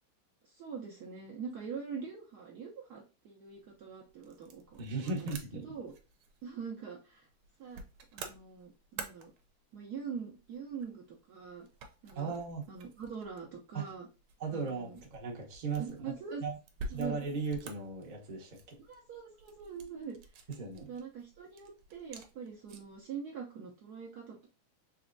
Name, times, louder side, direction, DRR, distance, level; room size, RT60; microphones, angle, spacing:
voice 1, 0.4-5.1 5.5-5.9 6.4-7.3 7.6-7.8 8.1-9.3 9.7-11.7 12.0-12.3 12.7-14.1 14.5-15.0 15.7-16.4 16.9-17.2 18.8-20.2 20.8-24.5, right 6 dB, 70° right, 0 dB, 0.9 m, -43 dB
sound 1, 3.5-23.0, right 3 dB, 90° right, 1.5 m, -51 dB
voice 2, 4.8-5.8 12.1-12.7 13.7-13.9 14.4-15.8 16.4-16.5 16.9-18.8 20.6-20.9, right 4 dB, 45° right, 0 dB, 0.6 m, -37 dB
4.2 x 3.0 x 2.5 m, 0.30 s
omnidirectional pair, 2.3 m